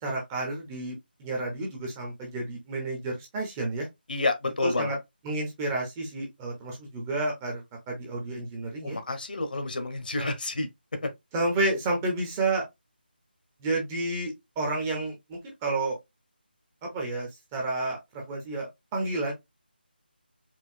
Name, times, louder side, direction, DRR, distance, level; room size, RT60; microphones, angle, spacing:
voice 1, 0.0-3.9 4.6-5.0 5.2-9.0 10.2-10.3 11.3-12.6 13.6-16.0 16.8-19.3, right 2 dB, 10° right, 0.8 m, -30 dB
voice 2, 4.1-4.9 8.8-10.7 11.0-11.1, left 3 dB, 55° left, 1.2 m, -29 dB
4.5 x 2.6 x 2.6 m
figure-of-eight pair, 170°, 6 cm